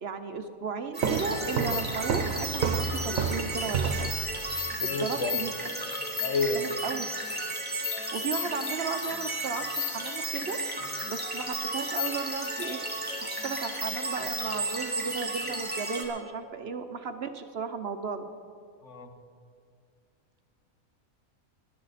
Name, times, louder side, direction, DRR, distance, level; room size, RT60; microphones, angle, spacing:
voice 1, 0.0-4.1 4.8-5.5 6.5-7.0 8.1-10.6 11.1-12.8 13.2-18.2, right 5 dB, 55° right, 8 dB, 0.8 m, -35 dB
sound 1, 0.9-16.0, equal, 5° right, 2.1 m, -33 dB
sound 2, 1.0-4.7, right 6 dB, 75° right, 1.1 m, -30 dB
voice 2, 4.8-5.4 6.2-6.6 18.8-19.1, left 4 dB, 65° left, 6 dB, 1.4 m, -30 dB
20.0 x 11.0 x 4.1 m, 2.2 s
omnidirectional pair, 1.4 m